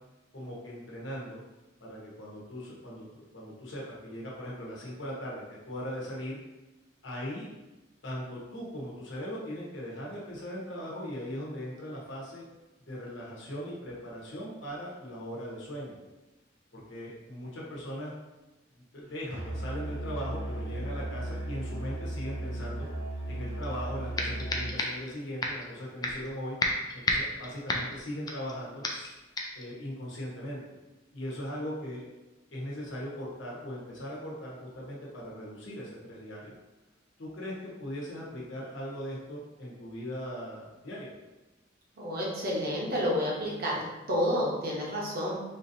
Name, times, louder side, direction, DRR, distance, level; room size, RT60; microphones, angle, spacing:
voice 1, 0.3-1.4 1.8-6.4 7.0-7.5 8.0-12.4 12.9-16.0 16.7-18.1 18.7-22.9 23.3-26.6 26.9-29.2 29.5-30.6 31.1-32.0 32.5-36.5 37.2-41.1, equal, 65° left, -5 dB, 1.1 m, -39 dB
Musical instrument, 19.3-24.8, right 1 dB, 80° right, 1.0 m, -36 dB
sound 1, 23.6-23.7 24.2-25.1 25.4-25.7 26.0-26.3 26.6-28.5 28.8-29.1 29.4-29.6, left 2 dB, 20° left, 0.4 m, -31 dB
voice 2, 42.0-43.8 44.1-45.4, equal, 50° right, -4 dB, 0.9 m, -29 dB
4.2 x 2.7 x 2.7 m, 1.0 s
head